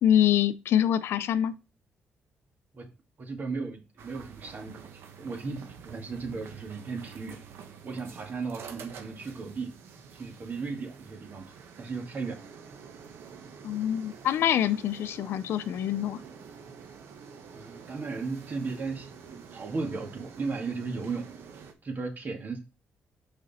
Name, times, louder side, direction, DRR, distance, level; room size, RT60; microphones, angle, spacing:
voice 1, 0.0-1.5 13.6-16.2, left 10 dB, 80° left, 0.5 m, -25 dB
voice 2, 3.2-4.8 5.2-5.6 5.8-7.4 7.8-9.7 10.1-11.4 11.8-12.4 17.5-21.2 21.8-22.6, right 4 dB, 50° right, 2.1 m, -35 dB
sound 1, 4.0-21.7, right 6 dB, 80° right, 1.1 m, -48 dB
6.3 x 5.1 x 4.3 m
cardioid pair, 80°, 4 cm